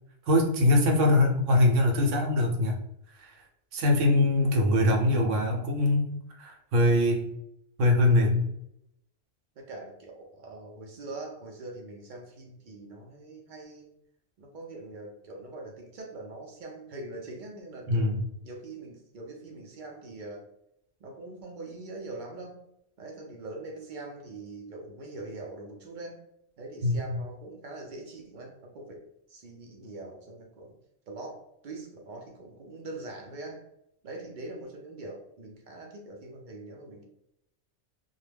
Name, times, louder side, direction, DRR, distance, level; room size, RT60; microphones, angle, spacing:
voice 1, 0.3-2.8 3.2-3.4 3.7-7.3 7.8-8.5 17.9-18.2 26.8-27.2, left 1 dB, 75° right, 1 dB, 1.0 m, -23 dB
voice 2, 4.4-4.7 9.6-13.9 14.4-18.1 18.4-20.4 21.0-22.6 23.0-26.2 26.6-30.7 31.1-33.6 34.0-37.0, right 2 dB, 55° right, 0 dB, 0.5 m, -43 dB
2.3 x 2.1 x 3.2 m, 0.78 s
omnidirectional pair, 1.3 m